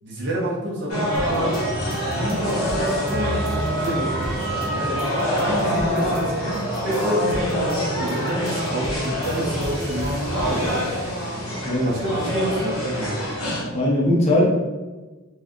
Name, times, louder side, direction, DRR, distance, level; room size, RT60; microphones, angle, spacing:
voice 1, 0.0-1.6 2.1-5.0 5.4-10.8 11.8-13.3, right 1 dB, 55° right, -5 dB, 0.8 m, -28 dB
sound 1, 0.9-13.6, equal, 90° left, 1.0 m, -26 dB
sound 2, 1.1-6.2 6.5-11.7 12.2-13.1, right 1 dB, 35° right, 0.4 m, -36 dB
Wind instrument woodwind instrument, 1.5-6.7, right 3 dB, ahead, 0.7 m, -34 dB
voice 2, 13.7-14.4, left 1 dB, 30° left, -5 dB, 0.8 m, -19 dB
2.6 x 2.4 x 3.6 m, 1.2 s
head